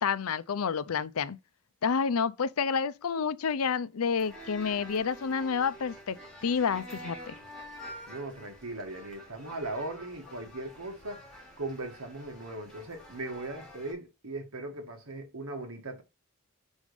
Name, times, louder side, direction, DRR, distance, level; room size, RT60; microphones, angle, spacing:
voice 1, 0.0-1.4 1.8-6.2 6.4-7.3, left 6 dB, 90° left, 0.5 m, -29 dB
sound 1, 4.2-13.9, equal, ahead, 3.5 m, -48 dB
voice 2, 8.1-11.2 11.6-16.0, right 2 dB, 90° right, 1.8 m, -38 dB
6.2 x 5.3 x 3.1 m
head